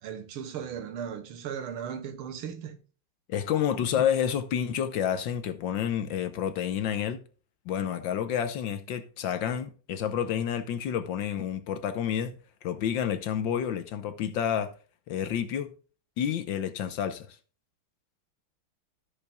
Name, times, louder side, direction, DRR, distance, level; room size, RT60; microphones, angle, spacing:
voice 1, 0.0-2.8, right 8 dB, 85° right, 1.9 m, -37 dB
voice 2, 3.3-7.2 7.7-12.3 12.6-14.7 15.1-15.7 16.2-17.3, left 9 dB, 70° left, 1.4 m, -29 dB
13.5 x 6.8 x 2.3 m
omnidirectional pair, 2.3 m